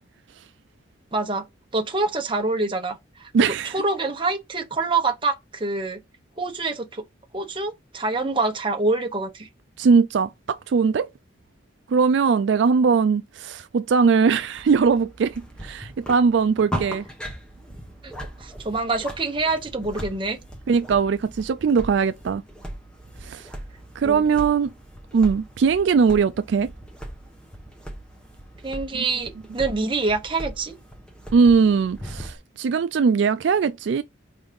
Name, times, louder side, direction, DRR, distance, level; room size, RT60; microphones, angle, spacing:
voice 1, 1.1-1.4 1.7-3.3 3.7-6.0 6.4-7.0 7.3-9.5 18.0-18.1 18.4-20.4 24.0-24.2 28.6-30.7, right 3 dB, 25° right, 1.0 m, -26 dB
voice 2, 3.3-3.8 9.8-11.1 11.9-17.1 20.7-22.4 23.2-23.5 24.0-24.7 25.1-26.7 28.9-29.0 31.3-34.0, right 5 dB, 65° right, 0.3 m, -20 dB
sound 1, 14.5-32.4, equal, 5° left, 0.9 m, -38 dB
4.7 x 4.0 x 5.1 m
head